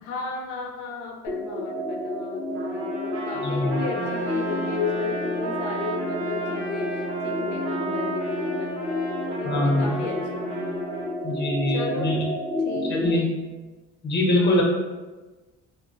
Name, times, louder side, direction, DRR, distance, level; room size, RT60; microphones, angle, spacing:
voice 1, 0.0-8.8 9.2-10.8 11.7-12.2 12.6-13.0 14.3-14.6, left 5 dB, 85° left, 2 dB, 0.5 m, -34 dB
sound 1, 1.3-13.1, left 1 dB, ahead, 0.3 m, -30 dB
Trumpet, 2.5-11.1, right 2 dB, 90° right, 0.7 m, -37 dB
voice 2, 3.4-3.8 9.4-10.0 11.2-12.3 12.8-13.3 14.0-14.6, left 1 dB, 35° left, -1 dB, 0.7 m, -23 dB
Wind instrument woodwind instrument, 3.9-11.1, right 6 dB, 50° right, 0.8 m, -37 dB
2.2 x 2.0 x 2.8 m, 1.2 s
cardioid pair, 90°, 30 cm